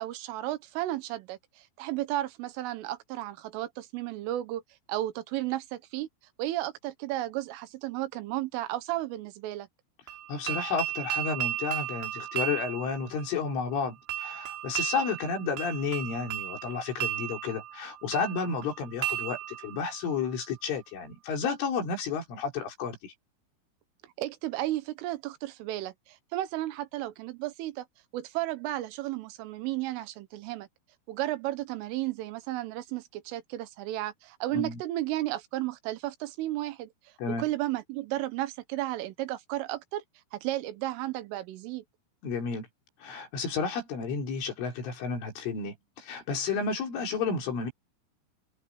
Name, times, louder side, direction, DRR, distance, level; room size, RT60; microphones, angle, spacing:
voice 1, 0.0-4.6 4.9-6.1 6.4-9.7 24.0-27.9 28.1-30.7 31.1-36.9 37.3-40.0 40.3-41.9, right 15 dB, 85° right, 3.8 m, -33 dB
sound 1, 10.1-20.9, right 12 dB, 65° right, 4.9 m, -36 dB
voice 2, 10.3-23.1 34.5-34.8 37.2-37.4 42.2-42.7 43.0-47.7, left 5 dB, 80° left, 7.1 m, -32 dB
omnidirectional pair, 5.6 m